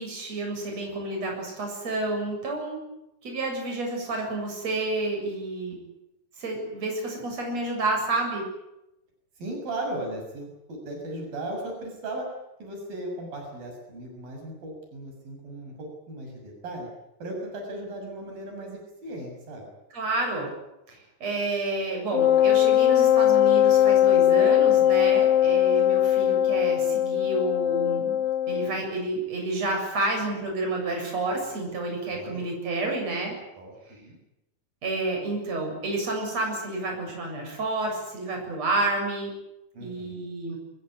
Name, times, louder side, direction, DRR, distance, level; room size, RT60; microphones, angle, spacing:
voice 1, 0.0-2.8 3.2-5.8 6.4-8.4 19.9-20.5 20.9-28.2 28.5-33.4 34.8-39.3 39.8-40.6, right 2 dB, 45° right, 1 dB, 8.7 m, -30 dB
voice 2, 9.4-12.3 12.6-16.9 17.2-19.7 32.1-32.4 33.6-34.2 39.7-40.3, right 1 dB, 80° right, 2 dB, 8.4 m, -37 dB
Wind instrument woodwind instrument, 22.1-28.8, left 11 dB, 65° left, 1.5 m, -20 dB
23.0 x 22.0 x 9.9 m, 0.89 s
omnidirectional pair, 4.0 m